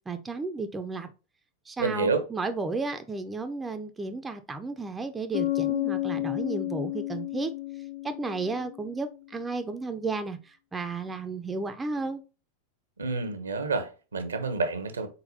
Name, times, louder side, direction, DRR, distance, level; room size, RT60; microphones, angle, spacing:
voice 1, 0.1-1.1 1.7-7.5 8.0-12.2, right 3 dB, 15° right, 0.4 m, -33 dB
voice 2, 1.8-2.2 13.0-15.1, right 3 dB, 75° right, 0.7 m, -28 dB
Bass guitar, 5.3-9.0, left 16 dB, 60° left, 0.5 m, -31 dB
4.0 x 3.9 x 2.7 m
figure-of-eight pair, 90°, 0 cm